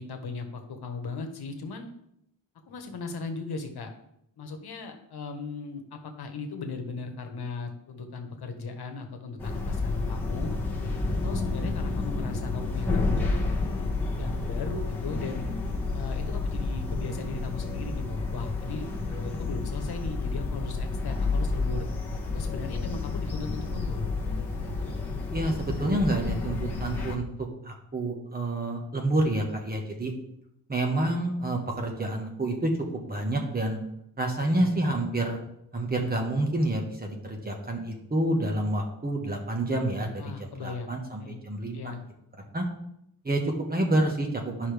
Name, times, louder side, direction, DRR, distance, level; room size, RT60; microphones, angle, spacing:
voice 1, 0.0-1.9 2.7-3.9 4.4-10.6 11.1-13.3 14.1-15.4 15.9-21.9 22.3-24.1 34.2-34.8 40.2-41.4 41.7-42.0, left 4 dB, 75° left, 5 dB, 1.2 m, -37 dB
sound 1, 9.4-27.2, left 3 dB, 5° left, 1.4 m, -30 dB
voice 2, 25.3-30.1 30.7-33.8 34.2-35.4 35.7-40.3 40.6-41.9 42.5-42.6 43.2-44.7, right 1 dB, 25° right, 2 dB, 1.3 m, -28 dB
11.0 x 5.5 x 3.4 m, 0.77 s
wide cardioid pair, 160°, 38 cm